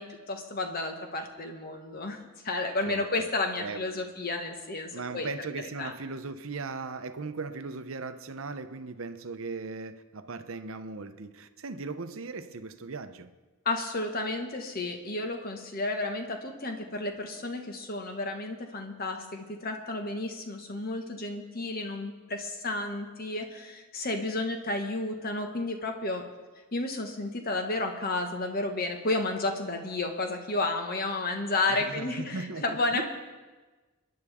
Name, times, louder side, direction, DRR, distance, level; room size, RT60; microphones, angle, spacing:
voice 1, 0.0-5.3 5.8-5.9 13.6-26.2 26.7-33.0, left 2 dB, 45° left, 1.5 m, -32 dB
voice 2, 4.9-13.3 31.7-33.0, right 4 dB, 65° right, 0.8 m, -38 dB
28.5 x 10.5 x 3.6 m
head